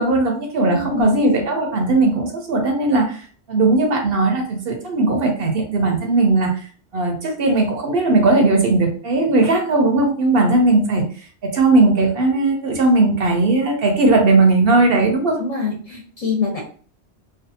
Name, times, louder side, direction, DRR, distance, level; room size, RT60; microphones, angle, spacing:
voice 1, 0.0-6.7 6.9-11.0 11.4-15.4, right 2 dB, 65° right, 2 dB, 0.8 m, -17 dB
voice 2, 0.7-1.2 10.5-10.6 15.4-16.6, left 5 dB, 40° left, -2 dB, 0.8 m, -24 dB
2.5 x 2.4 x 2.6 m, 0.44 s
omnidirectional pair, 1.2 m